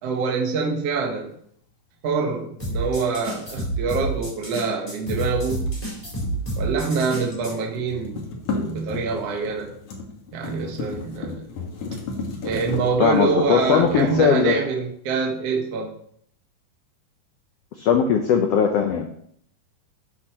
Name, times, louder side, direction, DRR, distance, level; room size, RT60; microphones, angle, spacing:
voice 1, 0.0-1.4 2.0-5.7 6.6-9.7 10.3-11.5 12.4-16.0, right 4 dB, 55° right, -1 dB, 2.1 m, -25 dB
sound 1, 2.6-7.5, right 2 dB, 10° left, 4.5 m, -29 dB
sound 2, 5.0-7.3 7.5-14.8, left 3 dB, 55° left, 2.5 m, -34 dB
voice 2, 13.0-14.5 17.8-19.1, left 7 dB, 75° left, 3 dB, 1.5 m, -19 dB
12.0 x 8.2 x 3.0 m, 0.64 s
omnidirectional pair, 3.9 m